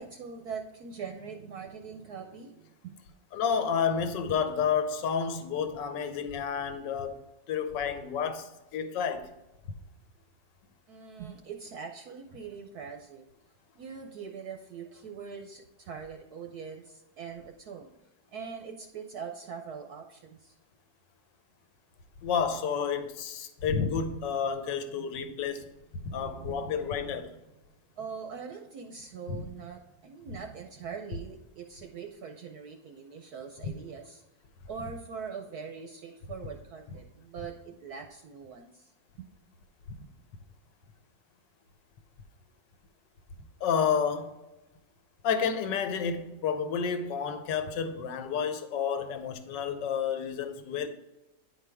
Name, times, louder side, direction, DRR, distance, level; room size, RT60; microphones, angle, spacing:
voice 1, 0.0-3.0 10.9-13.3 13.8-17.9 18.3-20.5 25.0-25.5 26.0-27.2 28.0-34.2 34.7-38.9 39.2-39.3, right 6 dB, 65° right, 1.0 m, -42 dB
voice 2, 3.3-9.3 22.2-25.7 26.0-27.3 29.3-29.4 43.6-44.3 45.2-50.9, left 6 dB, 70° left, 1.4 m, -30 dB
10.0 x 4.5 x 3.4 m
omnidirectional pair, 2.1 m